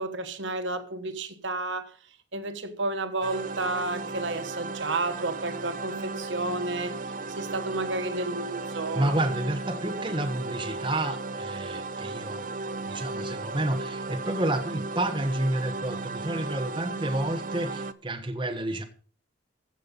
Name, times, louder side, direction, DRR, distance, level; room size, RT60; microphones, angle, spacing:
voice 1, 0.0-1.9 2.3-7.0 7.3-9.1, right 2 dB, 85° right, 1.3 m, -31 dB
sound 1, 3.2-17.9, right 3 dB, 45° right, 0.5 m, -35 dB
voice 2, 8.9-12.5 12.8-18.8, right 1 dB, 25° right, 1.2 m, -30 dB
15.5 x 5.8 x 5.4 m
head